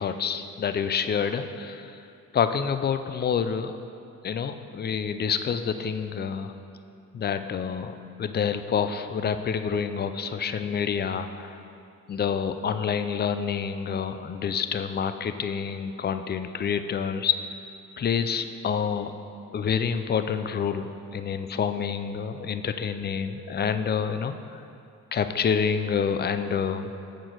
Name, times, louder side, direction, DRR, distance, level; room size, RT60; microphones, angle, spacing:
voice 1, 0.0-1.9 2.3-3.7 4.2-6.5 7.1-11.6 12.1-17.4 18.0-19.1 19.5-24.3 25.1-27.0, left 7 dB, 35° left, 10 dB, 0.4 m, -28 dB
7.7 x 4.5 x 6.3 m, 2.6 s
cardioid pair, 90°, 30 cm